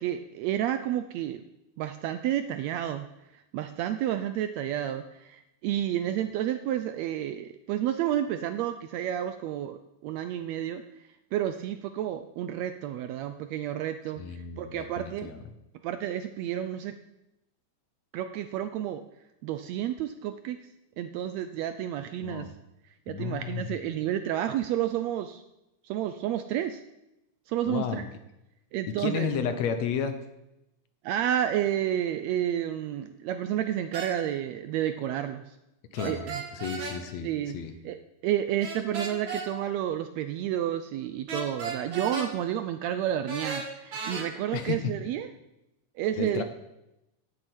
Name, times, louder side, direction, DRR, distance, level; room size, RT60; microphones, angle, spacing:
voice 1, 0.0-1.4 1.8-3.1 3.5-10.8 11.3-14.2 14.6-15.3 15.8-16.9 18.1-19.0 19.4-20.6 21.0-22.5 23.1-25.4 25.8-26.8 27.5-28.0 28.7-29.3 31.0-35.4 36.0-36.4 37.2-37.6 37.8-38.0 38.2-45.3 46.0-46.4, right 11 dB, 85° right, 9 dB, 1.5 m, -30 dB
voice 2, 14.2-15.4 22.2-22.5 23.1-23.8 27.7-28.1 28.9-30.2 35.9-36.3 36.5-37.8 44.5-45.0 46.2-46.4, left 7 dB, 70° left, 9 dB, 1.9 m, -32 dB
sound 1, 33.9-34.1 36.0-37.0 38.6-39.5 41.3-42.3 43.3-44.2, right 4 dB, 45° right, 1.9 m, -35 dB
9.0 x 7.8 x 8.9 m, 0.92 s
omnidirectional pair, 3.7 m